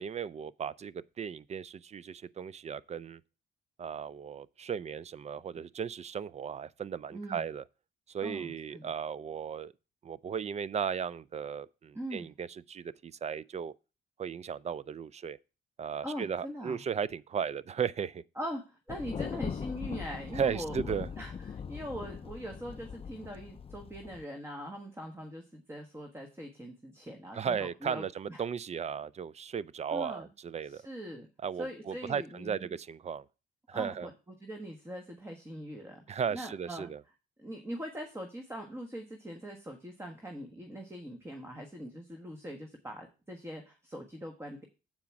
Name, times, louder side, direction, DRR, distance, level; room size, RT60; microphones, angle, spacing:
voice 1, 0.0-3.2 3.8-7.6 8.1-9.7 10.0-13.7 14.2-15.4 15.8-18.2 20.3-21.1 27.3-30.8 31.4-33.2 33.7-34.1 36.1-37.0, right 7 dB, 35° right, 0.4 m, -36 dB
voice 2, 7.1-7.4 8.2-8.9 11.9-12.3 16.0-16.8 18.4-28.4 29.9-30.3 30.6-31.3 31.6-32.7 33.7-34.1 34.4-36.9 37.4-44.6, equal, 15° right, 1.3 m, -42 dB
Thunder, 18.9-24.2, left 6 dB, 30° left, 0.4 m, -40 dB
7.4 x 4.9 x 5.8 m
cardioid pair, 90°, 20 cm